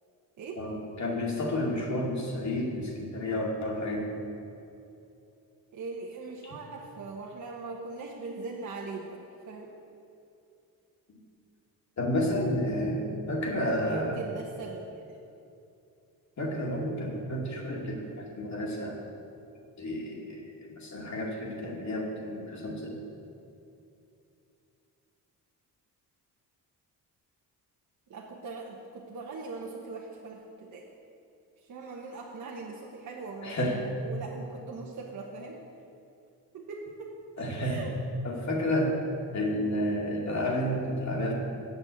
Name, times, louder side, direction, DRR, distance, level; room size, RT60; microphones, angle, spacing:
voice 1, 0.6-4.1 11.1-11.2 12.0-14.2 16.4-19.0 19.8-23.0 33.4-33.8 37.4-37.9 38.2-39.0 39.3-41.3, left 1 dB, 50° left, -2 dB, 2.4 m, -31 dB
voice 2, 5.7-9.7 13.8-15.2 28.1-30.9 31.7-35.6 36.5-37.1 37.6-37.9, right 3 dB, 55° right, -2 dB, 1.2 m, -40 dB
8.2 x 6.1 x 8.1 m, 2.7 s
cardioid pair, 80°, 36 cm